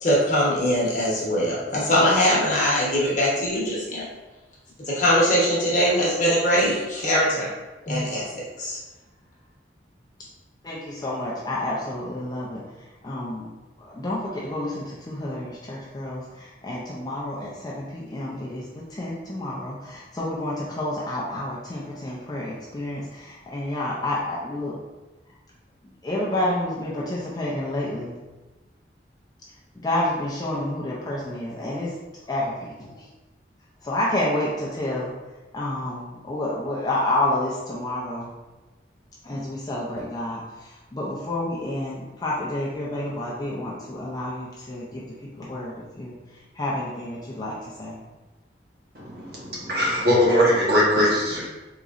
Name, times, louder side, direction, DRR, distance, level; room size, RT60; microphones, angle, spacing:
voice 1, 0.0-4.0 4.9-7.5 7.9-8.8, equal, 45° left, -5 dB, 1.0 m, -22 dB
voice 2, 10.6-12.6 13.0-13.5 13.8-18.7 19.0-24.8 26.0-28.1 29.8-31.9 32.3-32.9 33.8-35.1 35.5-38.3 39.2-40.4 40.9-45.0 45.4-46.1 46.6-47.9, left 1 dB, 20° left, -6 dB, 0.4 m, -29 dB
voice 3, 48.9-51.4, equal, 55° right, -6 dB, 1.1 m, -21 dB
3.7 x 3.0 x 2.4 m, 1.1 s
head